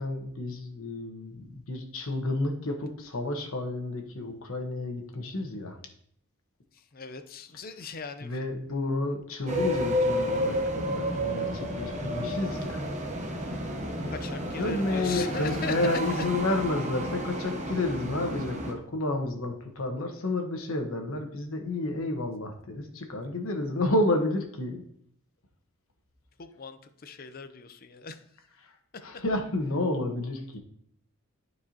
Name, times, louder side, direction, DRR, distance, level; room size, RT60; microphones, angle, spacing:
voice 1, 0.0-5.8 8.2-12.8 14.6-24.8 28.6-28.7 29.0-30.6, left 2 dB, 70° left, 4 dB, 1.2 m, -30 dB
voice 2, 6.7-8.4 14.0-16.3 26.4-28.4 28.9-29.2, left 5 dB, 45° left, 9 dB, 0.5 m, -39 dB
sound 1, 9.5-18.7, equal, 30° right, 0.9 m, -31 dB
12.0 x 4.7 x 2.8 m, 0.66 s
head